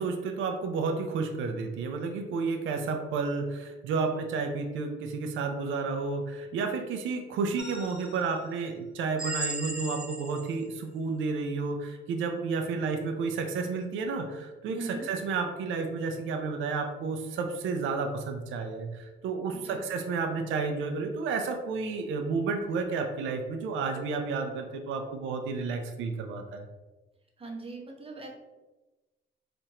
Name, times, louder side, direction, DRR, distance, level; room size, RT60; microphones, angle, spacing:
voice 1, 0.0-26.7, right 4 dB, 80° right, 5 dB, 0.5 m, -31 dB
sound 1, 7.6-8.4 9.2-10.6, right 1 dB, 5° right, 0.5 m, -37 dB
voice 2, 14.7-15.0 19.5-19.8 27.4-28.3, right 2 dB, 30° right, 1 dB, 0.9 m, -40 dB
4.3 x 2.5 x 2.8 m, 1.1 s
cardioid pair, 90°, 20 cm